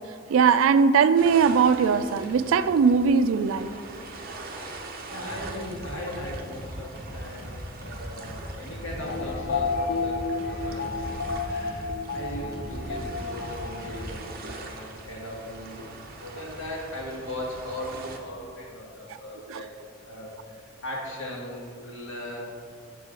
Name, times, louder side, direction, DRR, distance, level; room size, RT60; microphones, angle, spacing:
voice 1, 0.3-3.7 19.5-19.6, right 6 dB, 85° right, 13 dB, 0.3 m, -20 dB
sound 1, 1.2-18.2, right 2 dB, 45° right, 0.8 m, -43 dB
sound 2, 4.5-4.8 5.2-14.1, equal, 20° right, 1.8 m, -40 dB
voice 2, 4.6-11.1 11.5-15.9 16.2-19.8 20.0-20.6 20.8-22.6, left 1 dB, 75° left, -3 dB, 1.8 m, -38 dB
sound 3, 9.0-14.1, left 4 dB, 55° left, 0.4 m, -31 dB
7.9 x 6.5 x 3.7 m, 2.2 s
head